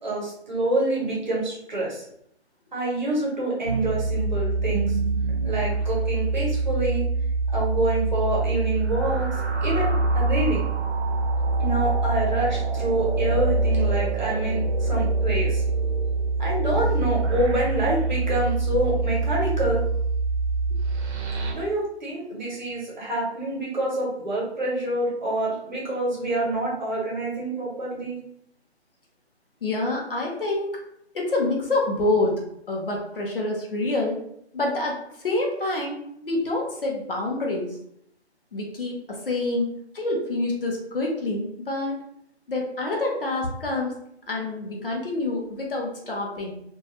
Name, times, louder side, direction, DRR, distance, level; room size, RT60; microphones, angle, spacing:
voice 1, 0.0-2.0 2.7-4.9 5.4-7.1 7.5-9.3 9.6-10.7 11.6-15.6 16.4-19.8 21.5-28.2, right 1 dB, 40° right, -5 dB, 0.8 m, -27 dB
sound 1, 3.7-21.5, right 3 dB, 75° right, 0.7 m, -25 dB
voice 2, 29.6-30.8 31.1-32.4 32.7-34.2 34.5-36.0 36.2-37.7 38.5-42.0 42.5-44.0 44.3-46.5, left 2 dB, 55° left, -1 dB, 0.7 m, -27 dB
2.3 x 2.2 x 2.8 m, 0.73 s
hypercardioid pair, 180°, 34 cm